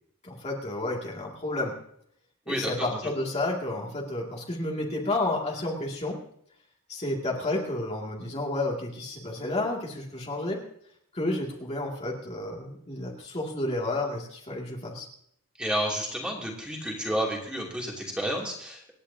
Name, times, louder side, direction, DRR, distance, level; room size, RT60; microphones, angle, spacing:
voice 1, 0.2-1.7 2.5-6.2 6.9-10.6 11.1-15.1, left 2 dB, 30° left, -2 dB, 2.3 m, -31 dB
voice 2, 2.5-3.0 15.6-18.9, equal, 5° right, -2 dB, 2.7 m, -31 dB
27.0 x 10.0 x 2.8 m, 0.70 s
head